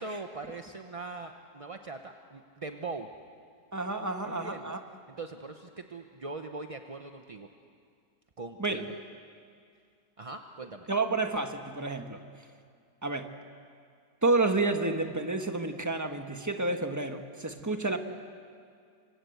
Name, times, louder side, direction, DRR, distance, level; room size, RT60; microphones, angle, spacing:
voice 1, 0.0-3.1 4.2-4.7 5.1-7.5 8.4-9.0 10.2-10.9, right 3 dB, 30° right, 5 dB, 0.6 m, -41 dB
voice 2, 3.7-4.8 8.6-8.8 10.9-12.2 13.0-13.3 14.2-18.0, right 3 dB, 10° right, 5 dB, 1.2 m, -30 dB
28.5 x 24.5 x 8.0 m, 2.2 s
omnidirectional pair, 1.8 m